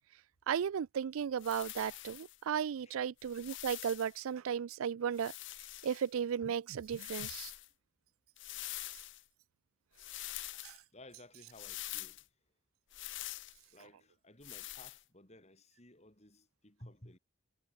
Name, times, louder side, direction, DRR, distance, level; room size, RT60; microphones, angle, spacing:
voice 1, 0.5-5.3 5.8-7.5 10.6-10.7, right 8 dB, 80° right, 0.4 m, -35 dB
sound 1, 1.4-2.4 3.2-4.2 5.1-6.1 6.9-7.7 8.4-9.2 10.0-10.8 11.5-12.2 12.9-13.6 14.4-15.0, left 16 dB, 60° left, 0.8 m, -45 dB
voice 2, 10.9-12.4 13.7-17.2, left 1 dB, 30° left, 4.4 m, -57 dB
head